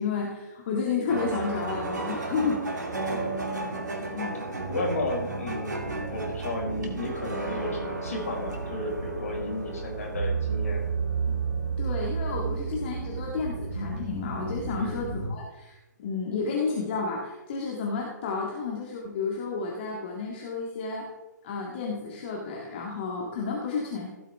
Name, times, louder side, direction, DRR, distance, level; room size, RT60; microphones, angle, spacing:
voice 1, 0.0-2.9 4.1-4.4 11.8-21.1 21.4-24.1, left 4 dB, 35° left, -2 dB, 1.9 m, -31 dB
sound 1, 1.1-15.3, right 4 dB, 70° right, 2.4 m, -32 dB
voice 2, 3.0-3.4 4.2-10.8 14.8-15.1, left 1 dB, 55° left, 0 dB, 4.6 m, -33 dB
16.0 x 8.8 x 3.4 m, 1.1 s
figure-of-eight pair, 130°, 10 cm